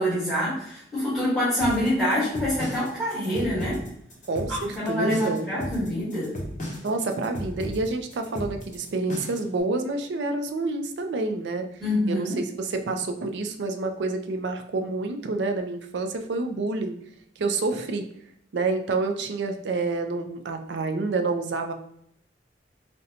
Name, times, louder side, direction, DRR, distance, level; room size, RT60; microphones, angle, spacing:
voice 1, 0.0-3.8 4.5-6.3 11.8-12.4, left 1 dB, ahead, -12 dB, 1.4 m, -26 dB
sound 1, 1.6-9.5, equal, 45° left, 0.9 m, -35 dB
voice 2, 4.3-5.5 6.8-11.7 12.1-17.0 17.4-18.0 18.5-21.7, right 3 dB, 70° right, 5 dB, 0.4 m, -28 dB
3.8 x 2.1 x 2.8 m, 0.69 s
head